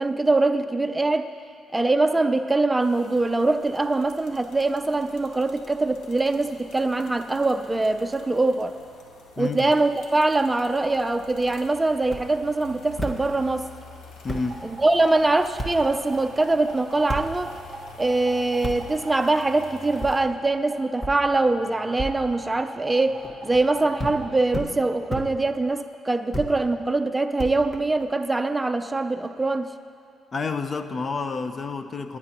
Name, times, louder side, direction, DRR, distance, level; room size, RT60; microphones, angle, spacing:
voice 1, 0.0-1.3 1.7-8.7 9.4-13.7 14.6-17.5 18.0-29.7, right 2 dB, 15° right, 8 dB, 0.5 m, -23 dB
sound 1, 2.8-20.2, left 4 dB, 75° left, 1.4 m, -48 dB
voice 2, 9.4-9.7 14.2-14.6 30.3-32.2, left 4 dB, 35° left, 9 dB, 0.6 m, -29 dB
sound 2, 12.0-12.2 13.0-13.1 13.9-14.0 14.3-14.4 15.6-15.7 17.1-17.2 18.6-18.8 20.0-20.1 21.0-21.1 22.0-22.1 23.2-23.6 24.0-24.2 24.5-24.7 25.1-25.2 26.3-26.5 27.4-28.1, equal, 20° left, 1.4 m, -30 dB
sound 3, 14.3-24.4, right 2 dB, 40° right, 0.9 m, -41 dB
27.0 x 9.6 x 3.0 m, 2.3 s
cardioid pair, 90°, 0 cm